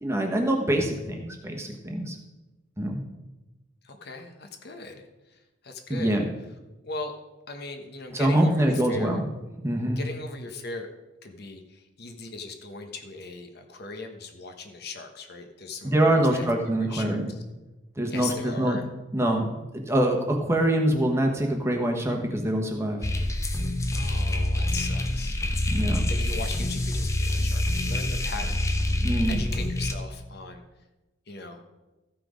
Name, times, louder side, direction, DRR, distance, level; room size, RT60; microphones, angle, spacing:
voice 1, 0.0-2.1 2.8-3.0 5.9-6.2 8.1-9.3 9.6-10.0 15.8-17.3 18.0-18.8 19.1-23.0 25.7-26.1 29.0-29.4, right 1 dB, 15° right, 2 dB, 1.1 m, -24 dB
voice 2, 3.8-5.0 5.6-6.2 6.8-7.1 7.5-9.2 10.0-10.9 11.2-16.5 16.8-17.2 18.1-18.9 23.9-25.4 26.1-28.6 29.3-30.6 31.3-31.6, left 3 dB, 50° left, 5 dB, 1.1 m, -38 dB
sound 1, 23.0-29.9, left 1 dB, 15° left, 0.6 m, -26 dB
14.0 x 5.9 x 5.0 m, 1.1 s
head